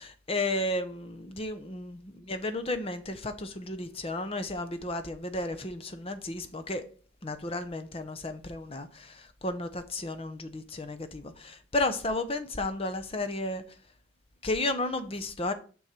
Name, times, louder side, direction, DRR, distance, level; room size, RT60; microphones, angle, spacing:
voice 1, 0.0-6.8 7.2-13.6 14.4-15.5, left 2 dB, 30° left, 0.7 m, -33 dB
6.4 x 6.3 x 4.4 m
head